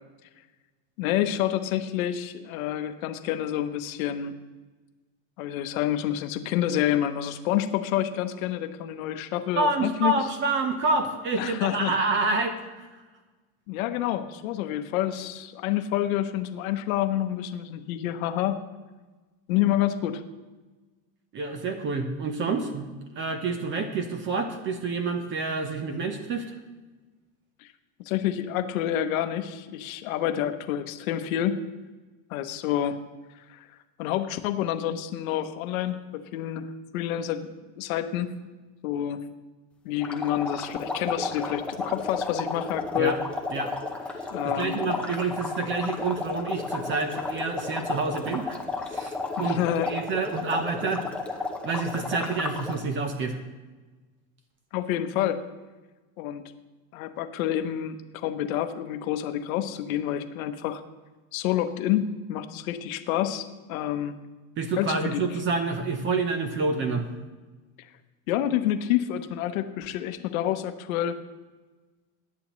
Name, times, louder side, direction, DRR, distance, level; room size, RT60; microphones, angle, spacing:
voice 1, 1.0-4.3 5.4-10.1 11.4-11.9 13.7-18.6 19.5-20.2 27.6-27.7 28.0-31.6 32.3-33.0 33.5-33.7 34.0-37.5 37.8-38.3 38.8-39.2 39.8-43.1 44.3-44.9 49.4-49.9 54.7-55.4 56.2-56.4 56.9-60.8 61.3-64.1 64.8-65.3 68.3-71.2, left 11 dB, 80° left, 9 dB, 1.0 m, -28 dB
voice 2, 9.6-12.9 21.3-22.9 23.2-26.5 43.0-43.2 43.5-43.7 44.5-49.6 49.9-51.0 51.6-53.4 64.6-67.1, right 3 dB, 30° right, 7 dB, 0.9 m, -28 dB
sound 1, 40.0-52.8, left 3 dB, 5° left, 0.6 m, -33 dB
18.0 x 10.5 x 3.1 m, 1.2 s
supercardioid pair, 160°, 41 cm